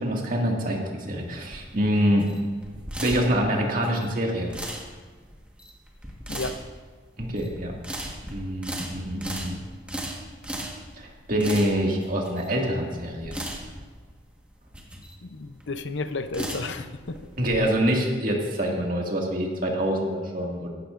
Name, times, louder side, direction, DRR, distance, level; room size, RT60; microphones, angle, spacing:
voice 1, 0.0-2.2 3.0-4.5 7.2-9.6 11.0-13.4 17.4-20.7, equal, 50° right, -1 dB, 2.1 m, -26 dB
sound 1, 1.1-17.6, right 1 dB, 5° right, 1.4 m, -38 dB
voice 2, 15.2-17.2, left 3 dB, 90° left, 10 dB, 0.7 m, -32 dB
16.0 x 12.5 x 2.5 m, 1.5 s
head